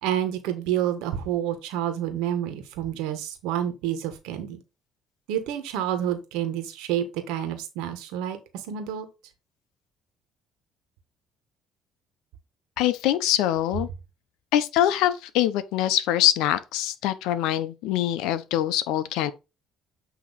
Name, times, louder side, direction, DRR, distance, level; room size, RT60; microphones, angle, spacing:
voice 1, 0.0-4.6 5.3-8.4 8.7-9.1, right 10 dB, 85° right, 1.4 m, -29 dB
voice 2, 12.8-13.9 14.5-19.3, left 12 dB, 80° left, 0.7 m, -24 dB
8.3 x 3.0 x 4.1 m
supercardioid pair, 75°, 0 cm